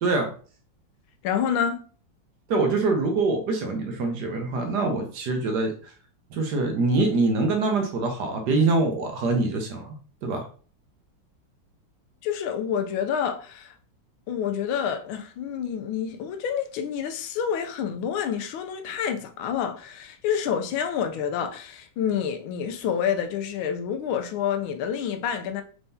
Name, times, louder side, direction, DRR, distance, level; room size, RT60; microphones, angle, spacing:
voice 1, 1.2-1.8 12.2-13.7 14.3-25.6, left 8 dB, 90° left, 1.4 m, -28 dB
voice 2, 2.5-5.9 6.3-10.0 10.2-10.4, right 3 dB, 65° right, 1.2 m, -24 dB
4.5 x 3.5 x 2.6 m
omnidirectional pair, 2.2 m